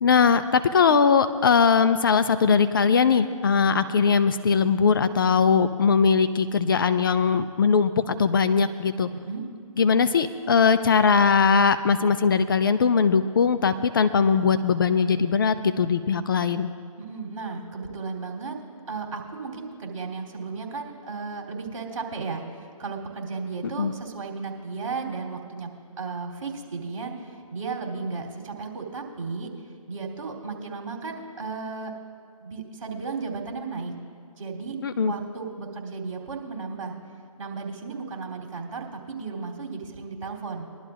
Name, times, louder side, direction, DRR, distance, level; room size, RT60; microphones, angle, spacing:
voice 1, 0.0-9.1 9.8-16.7 23.8-23.9 34.8-35.1, left 5 dB, 40° left, 11 dB, 0.5 m, -20 dB
voice 2, 9.1-9.4 17.0-18.6 18.9-29.5 29.9-31.9 32.4-33.9 34.4-36.9 37.4-40.7, right 4 dB, 60° right, -1 dB, 3.1 m, -34 dB
22.0 x 12.0 x 2.5 m, 2.2 s
figure-of-eight pair, 150°, 18 cm